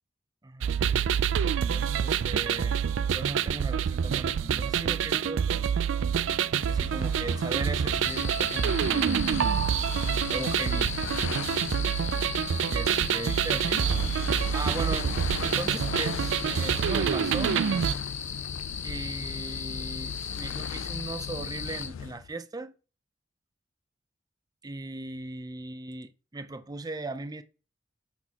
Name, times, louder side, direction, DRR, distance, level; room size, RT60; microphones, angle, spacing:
voice 1, 0.4-0.7 1.6-2.8 3.1-5.7 6.7-9.1 10.3-10.9 12.7-13.9 14.5-15.1 15.4-17.6 18.8-22.8 24.6-27.4, right 2 dB, 20° right, 0.5 m, -38 dB
sound 1, 0.6-17.9, right 8 dB, 75° right, 0.4 m, -27 dB
sound 2, 6.5-22.3, left 7 dB, 85° left, 0.3 m, -39 dB
sound 3, 8.0-21.9, left 7 dB, 40° left, 0.8 m, -37 dB
7.6 x 6.1 x 2.9 m
head